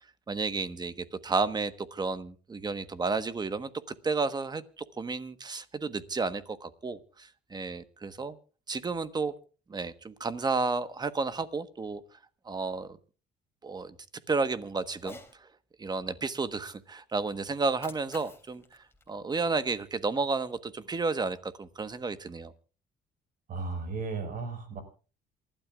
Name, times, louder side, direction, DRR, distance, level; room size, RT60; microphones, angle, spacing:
voice 1, 0.3-3.7 4.0-8.4 8.7-9.3 9.7-12.0 12.4-13.0 13.6-13.9 14.3-15.5 15.8-18.6 19.1-22.5, right 4 dB, 25° right, 12 dB, 1.3 m, -32 dB
Cat, 14.9-15.4 17.6-19.9, left 2 dB, 15° left, 3.0 m, -50 dB
voice 2, 23.5-24.8, right 4 dB, 55° right, 8 dB, 5.2 m, -35 dB
28.0 x 12.5 x 2.4 m, 0.37 s
cardioid pair, 110°, 17 cm